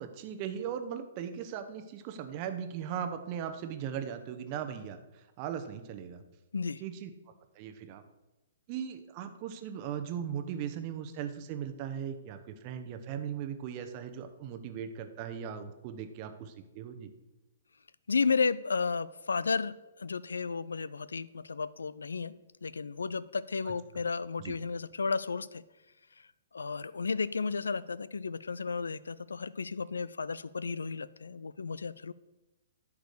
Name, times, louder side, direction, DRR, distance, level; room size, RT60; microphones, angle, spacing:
voice 1, 0.0-6.2 6.8-7.1 7.5-8.0 8.7-17.1 24.4-24.5, right 8 dB, 35° right, 8 dB, 0.9 m, -38 dB
voice 2, 18.1-22.3 22.6-25.6 26.5-32.1, left 5 dB, 70° left, 18 dB, 0.4 m, -33 dB
10.5 x 4.9 x 6.5 m, 1.0 s
figure-of-eight pair, 120°, 0 cm